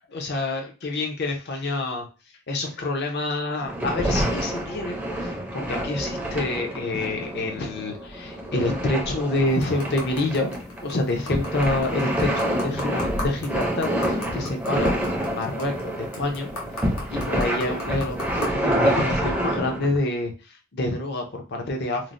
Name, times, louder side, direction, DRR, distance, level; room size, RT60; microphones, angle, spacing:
voice 1, 0.1-2.1 2.5-10.5 10.8-16.5 17.1-22.1, left 2 dB, 45° left, 2 dB, 0.6 m, -27 dB
sound 1, 3.6-20.0, equal, 5° right, 0.5 m, -27 dB
sound 2, 9.5-18.5, left 2 dB, 80° left, 0.9 m, -39 dB
3.1 x 2.0 x 2.5 m, 0.32 s
head